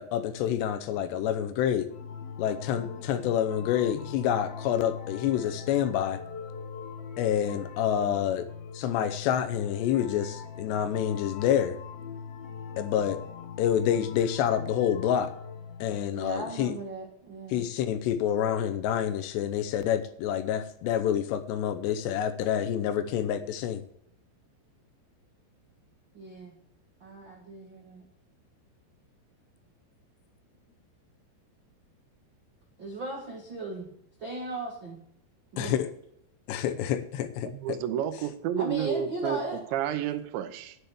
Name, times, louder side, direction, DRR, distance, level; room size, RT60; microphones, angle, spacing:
voice 1, 0.0-1.9 2.4-6.2 7.2-8.5 8.7-11.8 12.8-13.2 13.6-15.3 15.8-16.7 17.5-23.8 35.6-35.9 36.5-37.8, left 10 dB, 80° left, 10 dB, 2.8 m, -28 dB
sound 1, 1.9-16.0, left 6 dB, 65° left, 3.0 m, -41 dB
voice 2, 16.1-17.6 26.1-26.6 27.0-28.0 32.8-33.9 34.2-35.0 35.5-35.8 38.6-39.6, right 2 dB, 65° right, -1 dB, 1.2 m, -37 dB
voice 3, 37.4-39.4 39.7-40.8, right 10 dB, 85° right, 11 dB, 3.2 m, -30 dB
10.5 x 8.1 x 7.0 m, 0.69 s
omnidirectional pair, 5.1 m